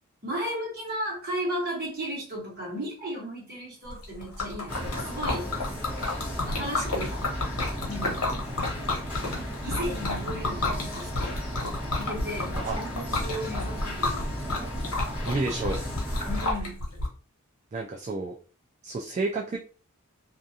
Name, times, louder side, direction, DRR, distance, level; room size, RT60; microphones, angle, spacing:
voice 1, 0.2-5.5 6.5-7.2 7.9-8.3 9.3-11.4 12.0-14.4 16.2-16.8, equal, 45° right, -2 dB, 1.2 m, -35 dB
Liquid, 3.9-17.1, left 2 dB, 80° left, 0.9 m, -31 dB
sound 1, 4.7-16.5, equal, 10° right, 1.2 m, -35 dB
voice 2, 15.3-15.8 17.7-18.3 18.8-19.6, right 3 dB, 30° right, 0 dB, 0.3 m, -30 dB
2.4 x 2.4 x 2.7 m, 0.37 s
head